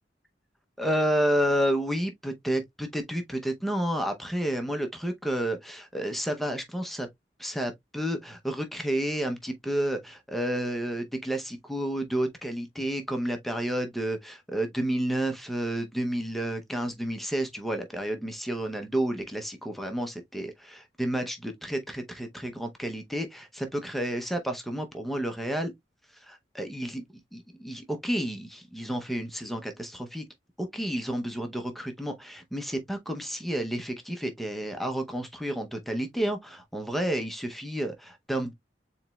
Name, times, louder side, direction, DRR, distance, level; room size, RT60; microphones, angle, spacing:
voice 1, 0.8-7.1 7.4-25.7 26.2-27.0 27.3-30.2 30.6-38.5, right 1 dB, ahead, 0.7 m, -30 dB
7.1 x 3.0 x 2.3 m
head